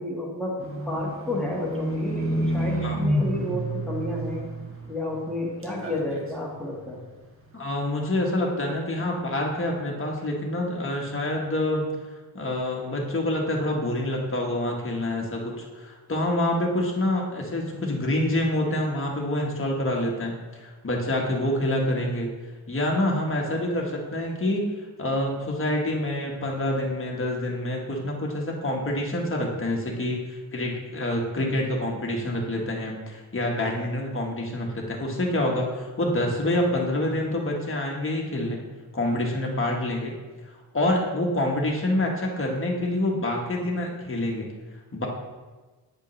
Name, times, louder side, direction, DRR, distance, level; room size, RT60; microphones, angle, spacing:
voice 1, 0.0-4.4 4.9-7.0, left 1 dB, ahead, -4 dB, 1.5 m, -31 dB
Livestock farm animals working animals, 0.6-5.4 5.6-6.3 6.8-6.9, right 1 dB, 35° right, 1.1 m, -29 dB
voice 2, 7.5-11.9 12.3-22.4 22.7-38.6 38.9-40.1 40.7-44.5 44.9-45.1, left 1 dB, 30° left, -1 dB, 1.3 m, -27 dB
8.8 x 5.2 x 3.2 m, 1.3 s
wide cardioid pair, 115°, 39 cm